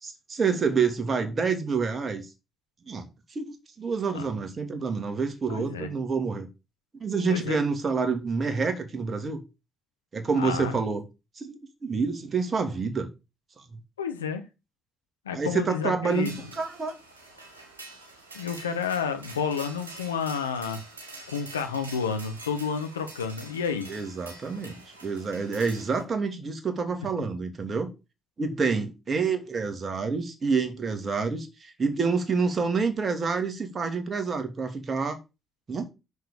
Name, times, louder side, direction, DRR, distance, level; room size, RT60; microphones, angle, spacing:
voice 1, 0.0-2.3 2.9-6.5 7.0-9.4 10.1-11.0 11.4-13.1 15.3-16.9 23.9-24.8 25.0-27.9 28.4-35.2 35.7-35.9, right 5 dB, 40° right, 2.6 m, -28 dB
voice 2, 5.5-5.9 7.3-7.6 10.4-10.8 14.0-14.4 15.2-16.3 18.3-20.8 21.3-24.0, left 6 dB, 85° left, 0.9 m, -30 dB
sound 1, 16.1-26.0, right 2 dB, 90° right, 1.7 m, -46 dB
6.7 x 6.4 x 6.9 m
figure-of-eight pair, 40°, 0 cm